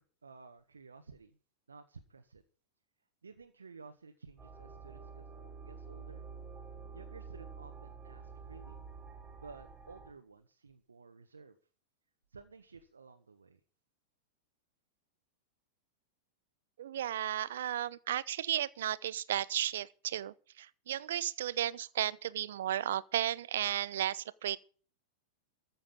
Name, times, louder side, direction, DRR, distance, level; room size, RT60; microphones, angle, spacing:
voice 1, 0.0-1.4 1.7-2.4 3.2-6.3 6.9-8.8 9.3-11.6 12.3-13.6, right 4 dB, 85° right, 1.5 m, -54 dB
sound 1, 4.4-10.1, right 5 dB, 15° right, 5.0 m, -49 dB
voice 2, 16.8-24.6, right 11 dB, 65° right, 0.9 m, -34 dB
14.5 x 7.6 x 8.8 m
figure-of-eight pair, 95°, 0 cm